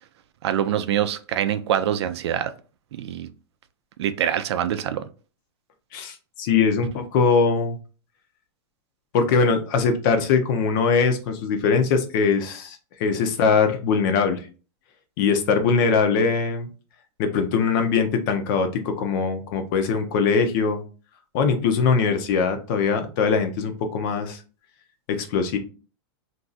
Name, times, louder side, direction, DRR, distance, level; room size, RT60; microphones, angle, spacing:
voice 1, 0.4-2.5 2.9-3.3 4.0-5.1, right 10 dB, 75° right, 0.4 m, -24 dB
voice 2, 5.9-7.8 9.1-14.5 15.2-16.7 17.2-20.8 21.3-24.4 25.1-25.6, left 5 dB, 50° left, 0.7 m, -21 dB
2.6 x 2.3 x 3.9 m
supercardioid pair, 145°, 14 cm